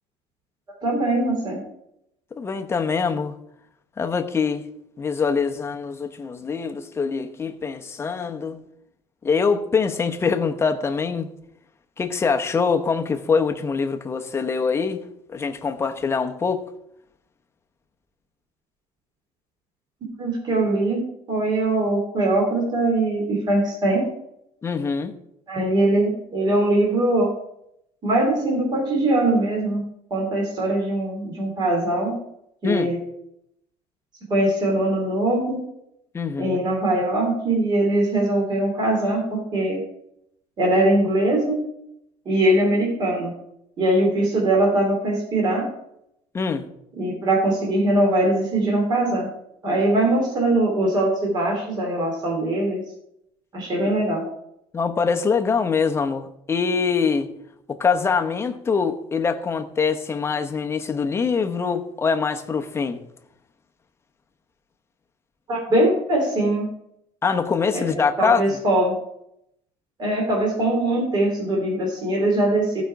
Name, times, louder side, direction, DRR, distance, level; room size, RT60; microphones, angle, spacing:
voice 1, 0.8-1.6 20.2-21.0 21.3-24.0 25.5-27.3 28.0-29.8 30.1-32.2 32.6-33.0 34.3-35.6 36.4-39.8 40.6-41.6 42.2-43.3 43.8-45.7 47.0-49.3 49.6-52.8 53.5-54.2 65.5-66.6 67.7-68.9 70.0-72.8, right 1 dB, 35° right, 2.9 m, -21 dB
voice 2, 2.3-3.3 4.0-4.6 5.0-8.6 9.2-11.3 12.0-15.0 15.3-16.7 24.6-25.1 32.6-32.9 36.1-36.6 46.3-46.7 53.8-53.9 54.7-57.3 57.7-63.0 67.2-68.6, left 5 dB, 20° left, 0.9 m, -24 dB
15.0 x 5.1 x 4.7 m
cardioid pair, 150°, 13 cm